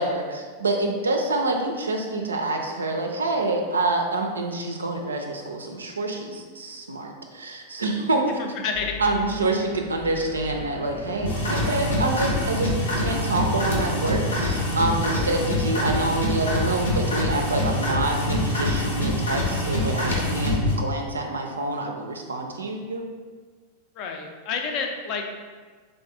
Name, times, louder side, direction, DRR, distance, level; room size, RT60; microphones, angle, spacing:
voice 1, 0.0-8.5 9.0-23.1, right 2 dB, 75° right, 2 dB, 0.4 m, -27 dB
voice 2, 8.6-9.0 24.0-25.3, left 5 dB, 40° left, 3 dB, 0.4 m, -29 dB
sound 1, 8.7-17.5, left 2 dB, 85° left, 1.2 m, -41 dB
sound 2, 11.2-20.7, left 1 dB, 65° left, 0.8 m, -25 dB
3.2 x 2.5 x 3.6 m, 1.5 s
figure-of-eight pair, 90°, 0 cm